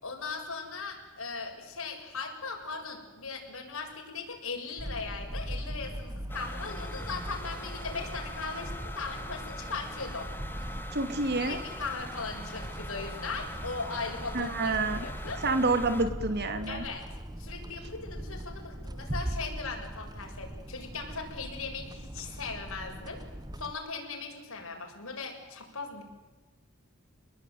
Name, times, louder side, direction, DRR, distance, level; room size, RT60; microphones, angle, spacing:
voice 1, 0.0-10.3 11.4-15.4 16.7-17.0 17.4-23.2 23.6-26.0, left 4 dB, 70° left, 2 dB, 6.8 m, -38 dB
sound 1, 4.8-23.7, equal, 20° right, 1.2 m, -40 dB
sound 2, 6.3-16.0, left 1 dB, 10° left, 1.7 m, -43 dB
voice 2, 10.9-11.6 14.3-15.1 15.4-16.9, right 3 dB, 50° right, 9 dB, 2.8 m, -28 dB
29.0 x 21.0 x 9.4 m, 1.1 s
head